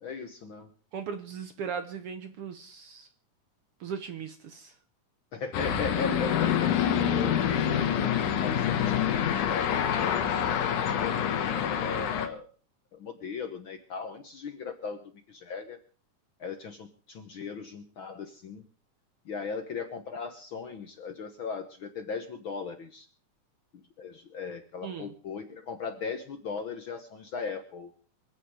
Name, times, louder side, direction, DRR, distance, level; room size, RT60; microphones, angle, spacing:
voice 1, 0.0-0.7 5.3-12.5 12.9-15.0 15.3-15.8 16.4-18.6 19.2-23.1 24.0-27.9, left 5 dB, 60° left, 8 dB, 1.4 m, -38 dB
voice 2, 0.9-3.1 3.8-4.7 24.8-25.1, right 7 dB, 65° right, 9 dB, 1.6 m, -38 dB
sound 1, 5.5-12.3, left 9 dB, 85° left, 2.9 m, -27 dB
26.0 x 8.7 x 4.9 m, 0.41 s
omnidirectional pair, 3.5 m